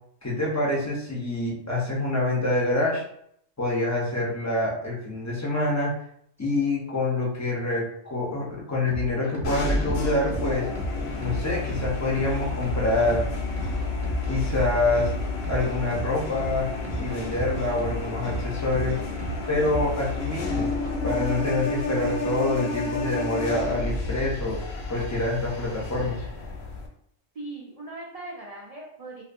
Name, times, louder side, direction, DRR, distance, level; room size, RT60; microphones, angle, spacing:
voice 1, 0.2-3.0 3.6-5.9 6.4-10.7 11.2-13.2 14.3-15.1 15.5-16.7 17.0-19.0 19.5-20.7 21.0-24.6 24.9-26.2, left 2 dB, 25° left, -5 dB, 0.3 m, -26 dB
Sinthy stuff, 8.9-23.9, right 2 dB, 35° right, 0.6 m, -36 dB
sound 1, 9.4-26.9, left 3 dB, 65° left, 0.7 m, -31 dB
voice 2, 27.3-29.2, right 2 dB, 70° right, -4 dB, 0.3 m, -39 dB
2.6 x 2.4 x 2.4 m, 0.71 s
omnidirectional pair, 1.3 m